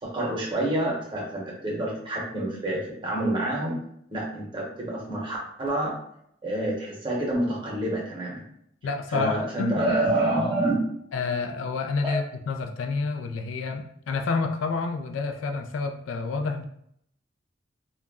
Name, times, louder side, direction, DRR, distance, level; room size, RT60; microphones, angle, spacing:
voice 1, 0.0-3.8 4.1-5.9 6.4-8.4 9.1-10.8 12.0-12.1, right 1 dB, 25° right, -4 dB, 0.8 m, -27 dB
voice 2, 8.8-9.8 11.1-16.6, left 4 dB, 90° left, 6 dB, 0.3 m, -29 dB
2.3 x 2.0 x 3.5 m, 0.70 s
head